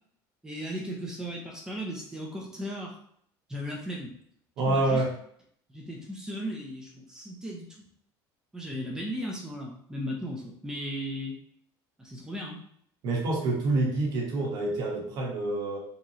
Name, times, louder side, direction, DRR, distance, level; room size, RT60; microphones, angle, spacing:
voice 1, 0.4-2.9 3.5-4.1 4.7-5.0 5.7-7.7 8.5-11.4 12.0-12.6, equal, 5° right, -2 dB, 0.6 m, -36 dB
voice 2, 4.6-5.1 13.0-15.8, right 2 dB, 45° right, -2 dB, 1.1 m, -27 dB
3.8 x 3.0 x 2.7 m, 0.66 s
cardioid pair, 175°, 9 cm